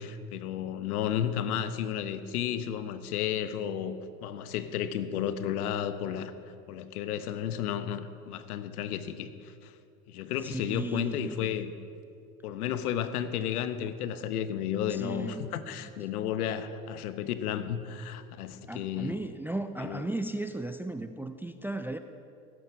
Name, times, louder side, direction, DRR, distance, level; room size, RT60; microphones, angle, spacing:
voice 1, 0.0-6.3 6.7-9.7 10.1-11.7 12.4-19.2 19.8-20.0, left 9 dB, 75° left, 12 dB, 1.1 m, -33 dB
voice 2, 10.4-11.5 14.9-15.9 18.7-22.0, right 2 dB, 5° right, 10 dB, 0.4 m, -36 dB
18.0 x 11.0 x 4.7 m, 2.5 s
hypercardioid pair, 80°, 46 cm